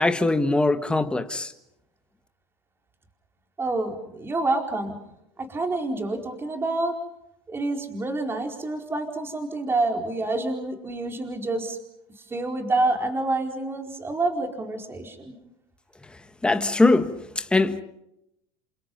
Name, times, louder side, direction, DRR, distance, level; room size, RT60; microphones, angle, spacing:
voice 1, 0.0-1.5 16.4-17.8, left 2 dB, 5° left, 1.6 m, -22 dB
voice 2, 3.6-5.0 5.4-7.0 7.5-11.8 12.2-15.4, right 2 dB, 15° right, 4.5 m, -27 dB
29.0 x 27.5 x 5.5 m
supercardioid pair, 135°, 14 cm